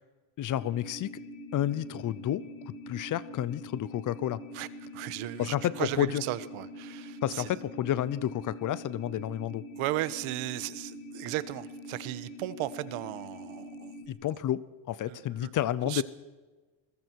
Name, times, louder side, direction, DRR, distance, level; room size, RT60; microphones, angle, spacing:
voice 1, 0.4-1.2 1.5-4.4 5.4-6.2 7.2-9.7 14.1-16.0, left 12 dB, 40° left, 18 dB, 0.7 m, -31 dB
sound 1, 0.5-14.1, left 1 dB, 90° left, 5.4 m, -44 dB
voice 2, 4.9-7.5 9.8-13.9 15.1-15.5 15.8-16.0, right 16 dB, 75° right, 15 dB, 1.3 m, -35 dB
28.0 x 21.5 x 4.7 m, 1.3 s
cardioid pair, 165°, 49 cm